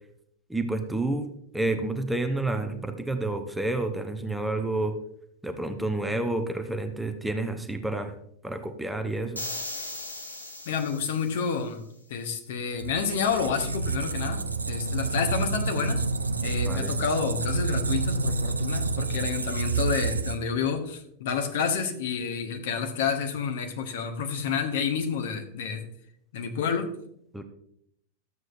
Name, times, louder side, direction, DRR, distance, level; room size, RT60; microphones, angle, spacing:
voice 1, 0.5-5.0 5.4-8.1 8.4-9.4 16.6-17.0 27.3-27.4, right 2 dB, 5° right, 6 dB, 0.8 m, -29 dB
sound 1, 9.3-11.6, left 2 dB, 80° left, 1.3 m, -38 dB
voice 2, 10.6-11.8 12.1-16.0 16.4-25.8 26.3-26.9, left 6 dB, 55° left, 6 dB, 1.1 m, -29 dB
Squeak, 12.8-20.6, right 3 dB, 80° right, 0.5 m, -28 dB
12.0 x 7.6 x 2.5 m, 0.71 s
figure-of-eight pair, 90°, 0 cm